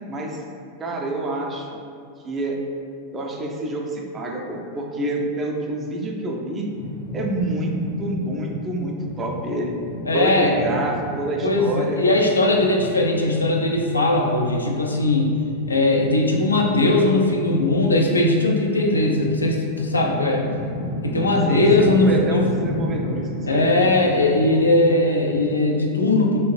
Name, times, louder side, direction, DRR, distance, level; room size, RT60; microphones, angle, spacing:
voice 1, 0.1-0.4 0.8-1.8 2.2-2.6 3.1-6.7 7.1-9.7 10.1-12.0 21.4-23.7, right 1 dB, 25° right, 0 dB, 0.4 m, -27 dB
sound 1, 6.7-25.4, left 1 dB, 25° left, 0.5 m, -33 dB
voice 2, 10.0-10.5 11.4-15.4 15.7-20.5 21.0-22.5 23.5-26.4, left 2 dB, 75° left, 0 dB, 0.3 m, -19 dB
2.7 x 2.4 x 3.1 m, 2.4 s
figure-of-eight pair, 90°, 0 cm